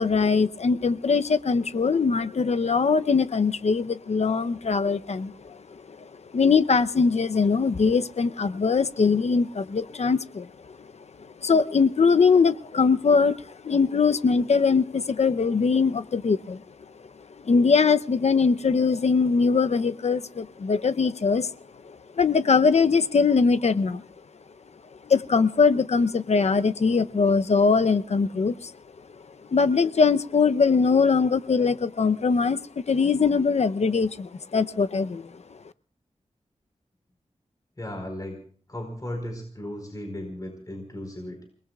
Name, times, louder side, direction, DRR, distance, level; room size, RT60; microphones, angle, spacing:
voice 1, 0.0-5.6 6.3-10.5 11.4-13.4 13.6-16.6 17.4-21.5 22.2-24.0 25.1-28.7 29.5-32.6 32.9-35.3, left 5 dB, 65° left, 12 dB, 0.7 m, -21 dB
voice 2, 37.8-38.4 38.7-41.5, left 1 dB, 30° left, 3 dB, 4.5 m, -36 dB
29.5 x 19.5 x 2.4 m, 0.44 s
wide cardioid pair, 70°, 12 cm